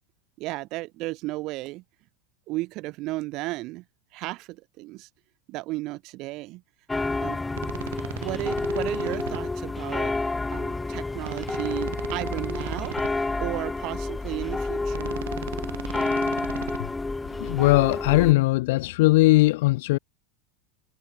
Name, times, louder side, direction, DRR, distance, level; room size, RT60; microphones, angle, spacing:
voice 1, 0.4-1.8 2.5-3.8 4.1-5.1 5.5-6.6 7.2-7.4 8.2-10.1 10.5-13.0 13.4-15.2, right 20 dB, 50° right, 8.0 m, -34 dB
sound 1, 6.9-18.3, left 3 dB, 10° left, 2.8 m, -29 dB
sound 2, 7.5-9.4 11.2-13.1 14.9-16.8, right 15 dB, 80° right, 3.6 m, -38 dB
voice 2, 17.4-20.0, left 20 dB, 70° left, 2.3 m, -19 dB
supercardioid pair, 130°, 0 cm